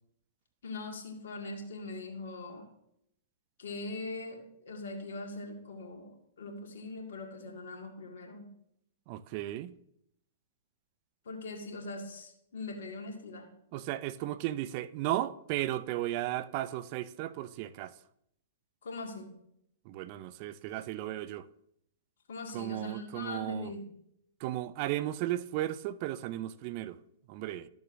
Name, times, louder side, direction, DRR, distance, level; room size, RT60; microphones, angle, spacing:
voice 1, 0.6-2.7 3.6-6.1 6.4-8.5 11.3-13.5 18.8-19.3 22.3-23.8, left 2 dB, 70° left, 1.9 m, -41 dB
voice 2, 9.1-9.7 13.7-17.9 19.9-21.5 22.5-23.7 24.4-27.0 27.3-27.7, right 14 dB, 45° right, 0.4 m, -35 dB
13.5 x 6.9 x 2.6 m
hypercardioid pair, 115°, 0 cm